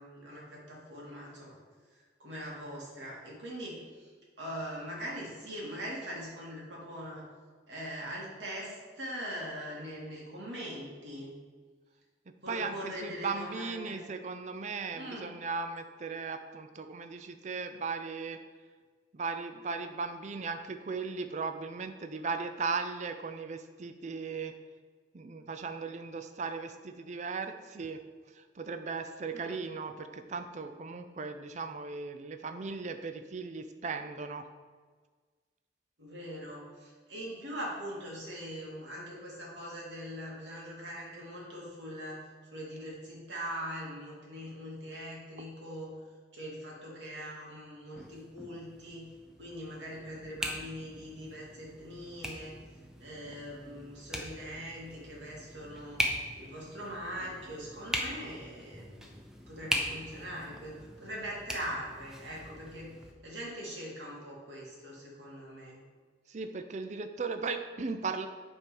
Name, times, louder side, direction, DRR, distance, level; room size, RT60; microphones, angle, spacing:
voice 1, 0.0-1.6 1.9-4.1 4.4-7.2 7.7-11.3 12.4-14.0 14.9-15.3 29.3-29.6 36.0-42.2 42.4-46.0 46.3-49.1 49.4-52.6 53.0-56.0 56.4-59.1 59.5-62.9 63.2-65.8, equal, 85° right, -4 dB, 2.6 m, -42 dB
voice 2, 12.5-18.4 19.1-24.5 25.1-28.0 28.3-34.4 66.3-68.3, right 4 dB, 40° right, 8 dB, 0.4 m, -37 dB
sound 1, 47.9-63.1, equal, 5° right, 0.7 m, -40 dB
8.6 x 4.5 x 5.4 m, 1.5 s
head